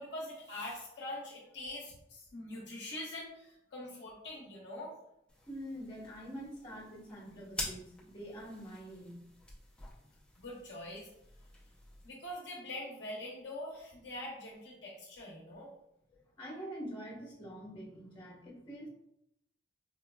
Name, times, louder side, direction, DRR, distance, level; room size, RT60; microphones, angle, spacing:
voice 1, 0.0-4.9 10.4-11.1 12.0-15.7, left 1 dB, 65° left, -3 dB, 0.7 m, -44 dB
sound 1, 5.3-12.1, left 1 dB, 5° left, 0.5 m, -48 dB
voice 2, 5.5-9.3 16.1-18.9, equal, 25° left, -6 dB, 1.1 m, -45 dB
4.4 x 2.3 x 2.2 m, 0.78 s
head